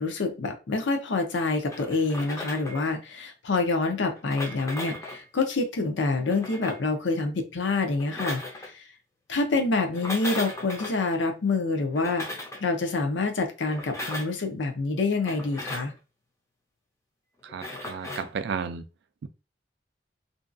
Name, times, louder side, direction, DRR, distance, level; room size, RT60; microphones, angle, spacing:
voice 1, 0.0-8.8 9.3-12.2 12.6-15.9, left 3 dB, 75° left, 0.6 m, -27 dB
sound 1, 1.7-2.9 4.1-5.2 6.2-6.9 7.9-8.7 9.9-11.0 11.9-12.6 13.6-14.4 15.2-15.9 17.5-18.3, left 1 dB, 15° left, 0.5 m, -37 dB
voice 2, 17.4-18.8, right 6 dB, 65° right, 0.3 m, -33 dB
2.6 x 2.3 x 2.5 m
head